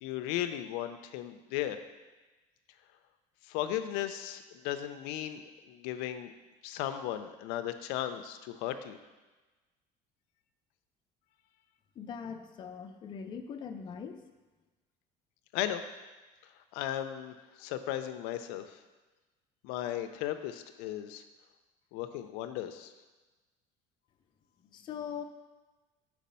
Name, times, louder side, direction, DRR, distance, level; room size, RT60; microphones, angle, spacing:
voice 1, 0.0-1.8 3.4-6.3 6.6-9.0 15.5-15.8 16.7-18.8 19.6-21.2 21.9-22.9, left 12 dB, 85° left, 8 dB, 0.4 m, -36 dB
voice 2, 12.0-14.2 24.7-25.2, left 7 dB, 30° left, 5 dB, 0.5 m, -41 dB
4.6 x 4.1 x 5.4 m, 1.2 s
cardioid pair, 140°, 15 cm